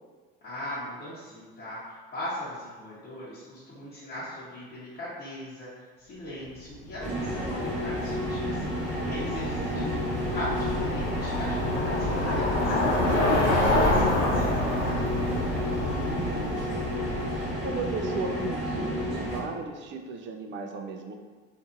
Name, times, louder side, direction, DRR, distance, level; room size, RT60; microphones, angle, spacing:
voice 1, 0.4-5.7 6.0-10.0 10.3-14.7, left 1 dB, 35° left, -12 dB, 1.0 m, -39 dB
Bicycle, 6.9-17.8, left 1 dB, 65° left, 0.8 m, -28 dB
sound 1, 7.0-19.4, equal, 5° right, 1.3 m, -31 dB
voice 2, 9.6-10.0 15.9-16.5 17.6-21.2, right 4 dB, 40° right, 4 dB, 0.4 m, -36 dB
2.6 x 2.5 x 2.5 m, 1.4 s
hypercardioid pair, 75°, 30 cm